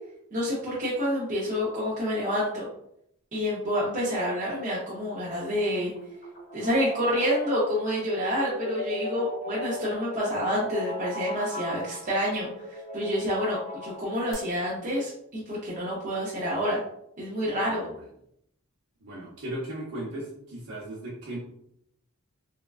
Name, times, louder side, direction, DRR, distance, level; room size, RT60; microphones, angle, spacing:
voice 1, 0.3-2.7 3.3-5.9 6.5-16.8 17.2-17.9, equal, 35° right, -7 dB, 0.6 m, -28 dB
sound 1, 5.9-14.3, left 1 dB, 40° left, 0.6 m, -38 dB
voice 2, 17.6-18.0 19.0-21.4, right 1 dB, 80° right, -7 dB, 0.8 m, -37 dB
3.5 x 2.3 x 2.3 m, 0.74 s
head